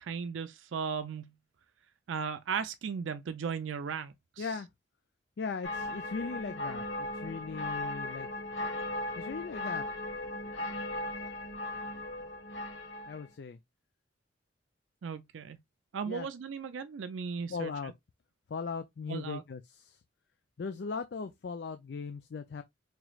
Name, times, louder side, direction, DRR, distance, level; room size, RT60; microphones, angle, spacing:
voice 1, 0.1-1.3 2.1-4.5 15.0-15.6 15.9-17.9 19.1-19.4, right 6 dB, 80° right, 0.4 m, -36 dB
voice 2, 4.4-4.7 5.4-8.3 9.2-9.9 13.1-13.6 16.1-16.3 17.5-17.9 18.5-20.0 20.6-22.6, left 5 dB, 60° left, 0.4 m, -38 dB
sound 1, 5.6-13.3, left 1 dB, 75° left, 1.5 m, -37 dB
4.6 x 3.1 x 2.3 m
head